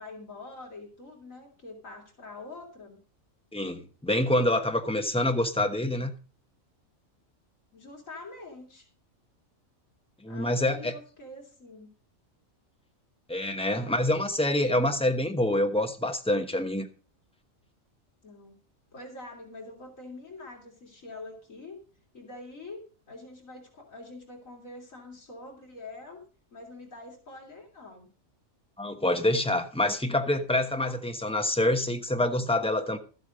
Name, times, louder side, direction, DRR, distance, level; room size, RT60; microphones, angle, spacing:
voice 1, 0.0-3.0 7.7-8.9 10.3-11.9 13.7-14.0 18.2-18.6 18.9-21.8 22.1-26.2 26.5-28.1 30.8-31.0, left 2 dB, 80° left, 0 dB, 3.5 m, -45 dB
voice 2, 3.5-6.1 10.2-11.0 13.3-16.9 28.8-33.0, left 1 dB, 5° left, 6 dB, 1.0 m, -26 dB
13.0 x 8.2 x 5.0 m, 0.36 s
omnidirectional pair, 1.4 m